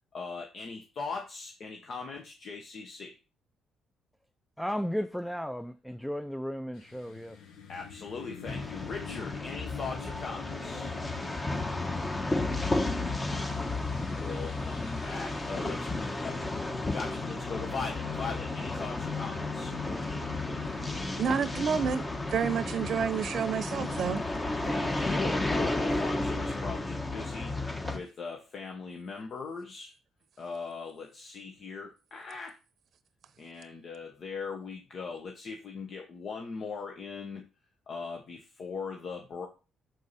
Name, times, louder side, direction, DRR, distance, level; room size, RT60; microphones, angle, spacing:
voice 1, 0.1-3.2 7.7-10.9 14.1-15.9 16.2-16.4 16.9-19.8 24.6-27.6 27.9-29.9 30.4-32.6 33.4-37.5 37.9-39.5, left 4 dB, 55° left, 1.3 m, -40 dB
voice 2, 4.6-7.5, equal, 5° left, 0.5 m, -34 dB
sound 1, 6.7-24.3, left 7 dB, 80° left, 1.2 m, -44 dB
sound 2, 8.5-28.0, left 2 dB, 20° left, 1.3 m, -33 dB
voice 3, 21.2-22.0 22.3-24.2, right 7 dB, 60° right, 0.7 m, -29 dB
6.6 x 4.7 x 4.1 m
cardioid pair, 90°, 0 cm